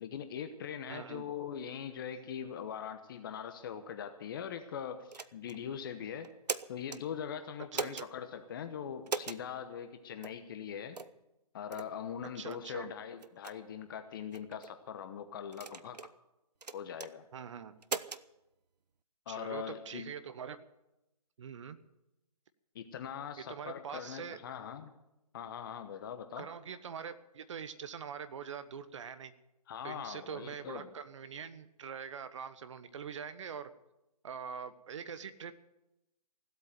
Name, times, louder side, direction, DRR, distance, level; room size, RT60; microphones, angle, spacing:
voice 1, 0.0-6.3 6.7-11.0 11.5-16.0 16.7-17.3 19.3-20.1 22.7-24.9 25.3-26.5 29.7-30.9, left 8 dB, 35° left, 8 dB, 1.0 m, -41 dB
voice 2, 0.9-1.3 7.7-8.1 12.3-12.9 17.3-17.7 19.3-20.6 21.4-21.8 23.5-24.4 26.4-29.3 29.8-33.7 34.2-35.5, right 7 dB, 50° right, 12 dB, 1.2 m, -43 dB
sound 1, 5.1-5.6 6.2-7.0 7.7-8.1 9.1-9.4 10.2-10.4 10.9-11.2 11.7-11.9 12.5-12.6 13.2-13.5 14.3-14.7 15.5-16.1 16.6-17.1 17.8-18.2, right 5 dB, 85° right, 0.8 m, -39 dB
16.5 x 8.2 x 9.2 m, 0.94 s
figure-of-eight pair, 145°, 20 cm